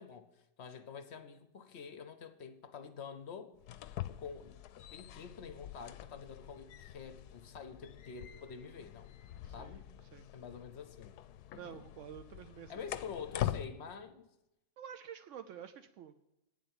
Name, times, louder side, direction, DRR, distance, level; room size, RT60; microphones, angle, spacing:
voice 1, 0.0-3.5 4.2-4.6 4.9-9.2 9.5-9.9 10.3-11.2 12.7-14.3, left 6 dB, 55° left, 0.8 m, -47 dB
sound 1, 3.6-13.7, left 12 dB, 75° left, 1.1 m, -44 dB
voice 2, 9.4-9.8 10.1-10.2 11.5-12.7 14.8-16.1, right 9 dB, 80° right, 0.6 m, -49 dB
8.8 x 7.5 x 8.7 m
omnidirectional pair, 1.9 m